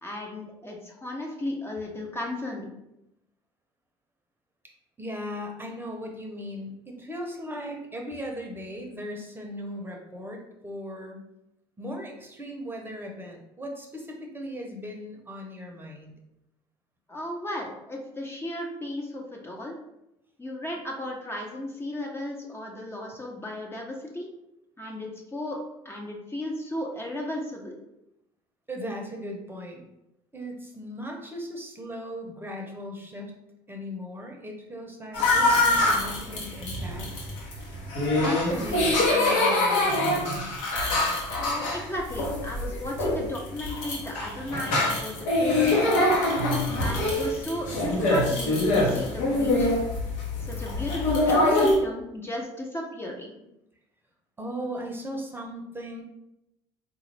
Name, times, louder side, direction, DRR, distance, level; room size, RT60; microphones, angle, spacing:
voice 1, 0.0-2.7 17.1-19.8 20.4-24.3 24.8-25.6 25.8-27.7 41.4-46.2 46.7-49.8 50.5-53.3, left 1 dB, 15° left, -1 dB, 0.7 m, -35 dB
voice 2, 5.0-11.2 11.8-16.1 28.7-29.8 30.3-33.4 33.7-37.6 38.1-40.6 54.4-56.0, equal, 15° right, 1 dB, 0.8 m, -37 dB
sound 1, 35.1-51.7, left 2 dB, 70° left, 1.0 m, -24 dB
3.8 x 2.5 x 3.2 m, 0.88 s
hypercardioid pair, 75°, 13 cm